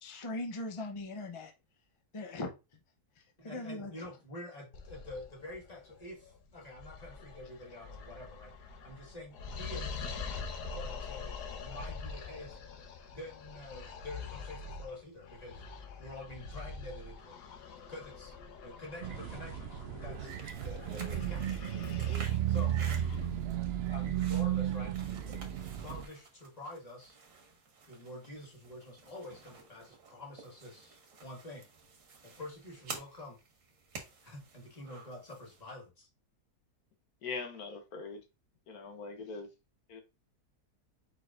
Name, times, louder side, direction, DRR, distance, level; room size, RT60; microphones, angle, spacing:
voice 1, 0.0-1.5 2.1-2.5 3.2-4.1, left 2 dB, 45° left, 0.4 m, -40 dB
voice 2, 3.4-8.5 8.8-10.0 10.7-12.6 13.1-15.6 16.0-17.4 17.9-18.3 18.6-21.6 22.5-22.9 23.9-24.9 25.2-25.5 25.8-27.2 27.9-31.6 32.2-33.4 34.2-36.1, left 2 dB, 25° left, 1.6 m, -47 dB
sound 1, 4.7-24.4, left 4 dB, 90° left, 1.4 m, -45 dB
sound 2, 19.0-26.0, right 11 dB, 85° right, 0.5 m, -34 dB
sound 3, 20.1-35.7, right 4 dB, 60° right, 1.4 m, -51 dB
voice 3, 37.2-38.2 38.7-39.5 39.9-40.0, left 4 dB, 70° left, 1.3 m, -41 dB
4.8 x 4.5 x 2.4 m
omnidirectional pair, 1.7 m